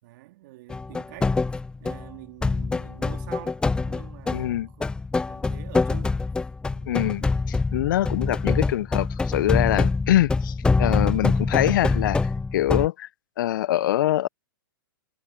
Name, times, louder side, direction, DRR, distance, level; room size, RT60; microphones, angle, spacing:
voice 1, 0.0-1.3 1.8-4.9 5.3-6.2 6.7-7.0, right 19 dB, 55° right, 2.2 m, -46 dB
sound 1, 0.7-2.1 2.4-12.9, left 3 dB, 5° left, 0.5 m, -25 dB
voice 2, 4.3-4.7 6.9-10.5 10.8-12.2 12.5-13.1 13.4-14.3, left 14 dB, 60° left, 0.6 m, -24 dB
hypercardioid pair, 120°, 12 cm